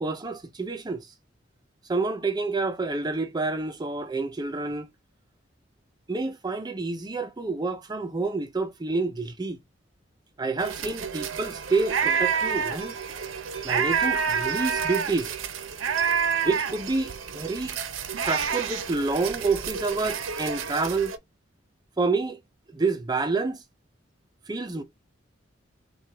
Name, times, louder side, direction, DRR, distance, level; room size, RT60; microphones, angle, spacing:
voice 1, 0.0-1.1 1.9-4.9 6.1-9.6 10.4-13.0 13.6-15.4 16.4-17.8 18.2-21.1 22.0-22.4 22.7-23.6 24.5-24.8, right 3 dB, 20° right, 0.5 m, -28 dB
sound 1, 10.6-21.2, right 6 dB, 90° right, 0.7 m, -29 dB
4.6 x 2.3 x 3.4 m
head